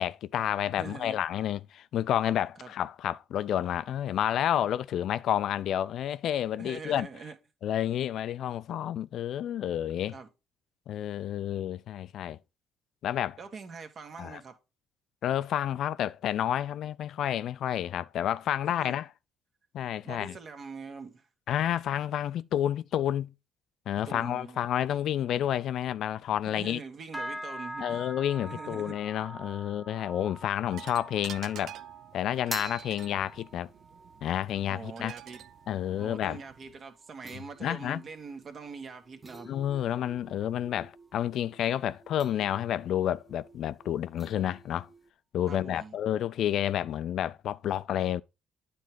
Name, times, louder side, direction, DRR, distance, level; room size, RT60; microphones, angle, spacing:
voice 1, 0.0-7.1 7.6-10.2 10.9-12.4 13.0-13.4 14.2-14.4 15.2-19.1 19.7-20.3 21.5-23.3 23.9-26.8 27.8-31.8 32.1-33.7 34.2-35.1 35.7-36.4 37.6-38.0 39.5-44.9 45.3-48.2, left 11 dB, 65° left, 0.4 m, -30 dB
voice 2, 0.8-1.2 2.6-2.7 6.6-7.4 10.1-10.3 13.4-14.6 18.7-19.0 20.0-21.3 24.0-24.6 26.4-28.1 28.5-29.0 34.7-35.4 36.0-39.5 45.5-46.0, right 5 dB, 50° right, 1.5 m, -43 dB
sound 1, 27.1-36.7 37.0-37.4 37.8-38.1 38.7-38.8, equal, 5° right, 0.6 m, -45 dB
sound 2, 30.7-36.8, right 11 dB, 65° right, 0.4 m, -49 dB
sound 3, 32.1-45.1, right 2 dB, 20° right, 1.2 m, -49 dB
9.5 x 3.6 x 4.5 m
supercardioid pair, 65°, 0 cm